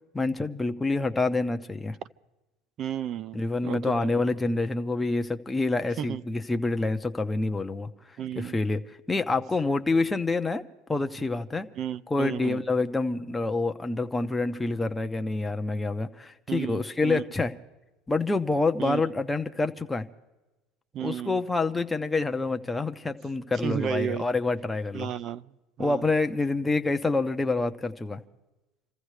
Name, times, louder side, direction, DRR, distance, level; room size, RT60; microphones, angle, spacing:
voice 1, 0.1-2.0 3.3-7.9 8.4-8.8 9.1-10.6 10.9-11.7 12.1-17.5 18.1-20.1 21.0-25.1 25.8-28.2, left 3 dB, 10° left, 0.7 m, -27 dB
voice 2, 2.8-4.1 6.0-6.2 8.2-8.6 11.8-12.6 16.5-17.2 18.8-19.0 20.9-21.4 23.6-24.3 24.9-25.5 25.8-26.1, right 9 dB, 40° right, 0.5 m, -33 dB
27.5 x 15.0 x 3.3 m
cardioid pair, 145°, 0 cm